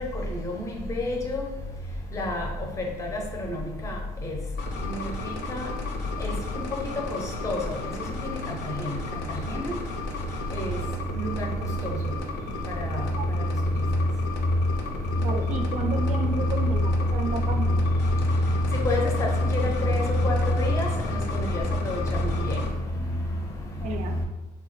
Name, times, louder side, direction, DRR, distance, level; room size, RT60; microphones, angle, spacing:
voice 1, 0.4-1.4 2.1-2.5 3.0-3.2 3.5-3.6 3.8-4.0 4.2-4.3 4.8-5.0 5.5-5.7 6.2-6.3 7.4-7.6 9.5-9.7 10.5-10.7 11.1-11.5 12.9-13.0 18.8-22.6, left 1 dB, 15° left, 1 dB, 0.5 m, -26 dB
sound 1, 4.6-22.7, left 3 dB, 80° left, 0.5 m, -34 dB
voice 2, 15.2-17.8 23.8-24.2, right 4 dB, 45° right, 5 dB, 0.4 m, -32 dB
3.1 x 2.0 x 3.0 m, 1.1 s
cardioid pair, 110°, 17 cm